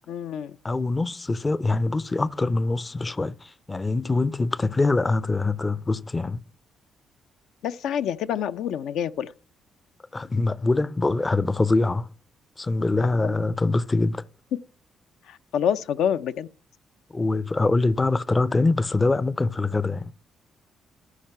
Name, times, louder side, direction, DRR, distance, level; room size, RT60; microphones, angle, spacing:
voice 1, 0.1-0.6 7.6-9.3 13.0-13.3 15.2-16.5, left 9 dB, 80° left, 0.5 m, -27 dB
voice 2, 0.6-6.4 10.1-12.1 12.6-14.2 17.1-20.1, left 3 dB, 20° left, 0.4 m, -24 dB
13.5 x 5.8 x 5.4 m
cardioid pair, 90°, 0 cm